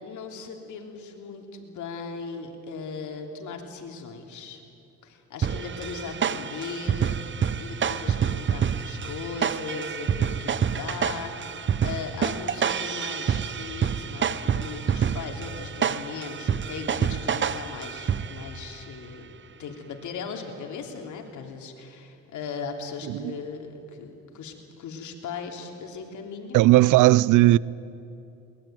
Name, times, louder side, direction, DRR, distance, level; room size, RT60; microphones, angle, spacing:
voice 1, 0.0-4.6 5.0-19.3 19.6-26.6, left 5 dB, 75° left, 3.4 m, -38 dB
sound 1, 5.4-18.6, right 7 dB, 40° right, 0.9 m, -28 dB
voice 2, 26.5-27.6, right 17 dB, 85° right, 0.5 m, -17 dB
22.0 x 20.5 x 9.2 m
cardioid pair, 90°, 30 cm